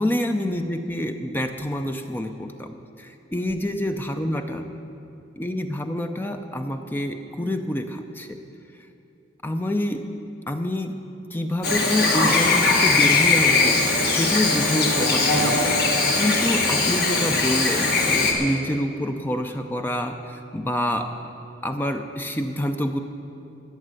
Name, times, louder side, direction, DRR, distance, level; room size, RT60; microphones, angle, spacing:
voice 1, 0.0-4.6 5.4-8.4 9.4-10.1 10.5-11.0 11.3-21.1 21.6-23.0, left 1 dB, 10° left, 6 dB, 0.5 m, -27 dB
Chirp tweet / Buzz, 11.6-18.3, left 3 dB, 55° left, 1.7 m, -20 dB
14.0 x 6.6 x 9.6 m, 2.6 s
head